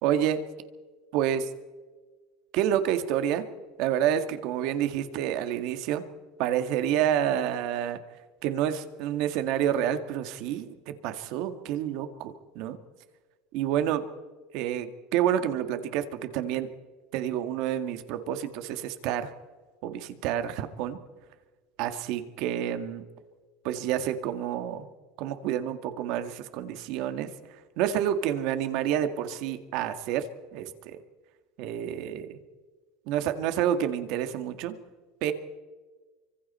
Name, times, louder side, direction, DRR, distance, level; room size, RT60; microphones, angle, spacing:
voice 1, 0.0-0.4 1.1-1.4 2.5-3.5 3.8-6.0 6.4-8.0 8.4-12.8 13.5-14.0 14.5-16.7 17.1-19.3 19.8-21.0 21.8-23.0 23.6-24.9 25.2-27.3 27.8-30.3 30.5-31.0 31.6-32.4 33.1-34.7 35.2-35.3, right 10 dB, 50° right, 9 dB, 1.9 m, -28 dB
30.0 x 25.0 x 4.4 m, 1.3 s
cardioid pair, 175°, 0 cm